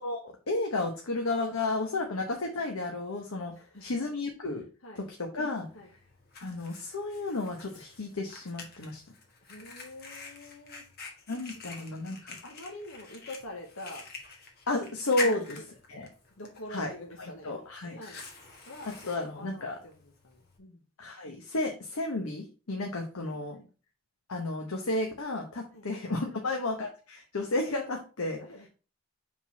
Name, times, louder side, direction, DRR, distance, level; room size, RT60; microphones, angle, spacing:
voice 1, 0.0-3.5 3.8-4.7 5.0-5.7 6.4-9.0 11.3-12.4 14.7-15.4 15.9-16.1 16.7-16.9 17.4-18.0 19.1-19.8 21.0-23.6 24.3-28.4, left 2 dB, 90° left, 2 dB, 1.0 m, -32 dB
voice 2, 3.5-3.9 4.8-5.1 5.7-5.9 9.5-10.8 11.7-11.9 12.4-14.1 15.2-15.7 16.4-17.5 18.0-18.2 18.6-20.8 23.2-23.7 25.7-25.9 26.3-26.4 28.4-28.7, left 1 dB, 70° left, 1 dB, 1.1 m, -46 dB
Fire, 5.6-20.6, left 4 dB, 45° left, 1.4 m, -45 dB
4.8 x 3.8 x 5.6 m, 0.35 s
head